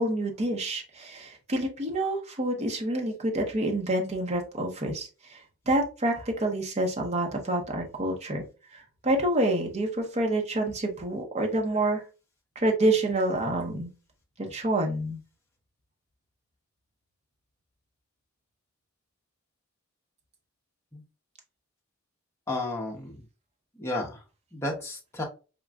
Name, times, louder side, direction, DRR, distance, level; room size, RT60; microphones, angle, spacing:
voice 1, 0.0-8.4 8.7-12.0 12.6-13.9 14.4-15.2, right 1 dB, 30° right, 2 dB, 0.7 m, -28 dB
voice 2, 22.5-23.2 23.7-24.2 24.5-25.2, left 2 dB, 10° left, -1 dB, 0.8 m, -32 dB
5.0 x 2.3 x 2.2 m, 0.32 s
head